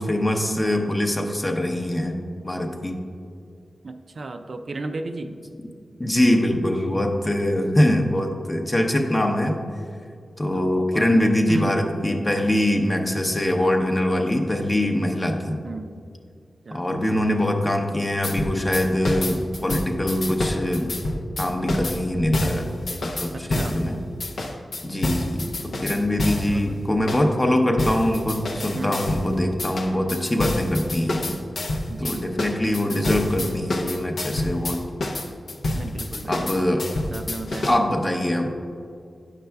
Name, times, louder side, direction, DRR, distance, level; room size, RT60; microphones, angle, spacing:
voice 1, 0.0-2.2 2.4-3.0 6.0-9.6 10.4-15.6 16.7-20.9 21.4-22.7 23.0-24.0 24.8-31.4 32.0-34.8 36.3-36.9 37.7-38.5, left 1 dB, 20° left, 3 dB, 0.6 m, -23 dB
voice 2, 3.8-5.3 10.5-11.9 15.6-16.0 16.6-17.0 23.3-23.8 26.4-26.7 28.7-29.0 31.9-32.3 35.7-36.5 36.9-37.7, right 3 dB, 55° right, 6 dB, 0.4 m, -34 dB
sound 1, 18.2-23.8 24.2-26.6 27.1-27.3 27.8-29.3 29.6-37.7, left 1 dB, 75° left, 0.6 m, -28 dB
9.2 x 6.6 x 2.3 m, 2.3 s
wide cardioid pair, 115°, 0 cm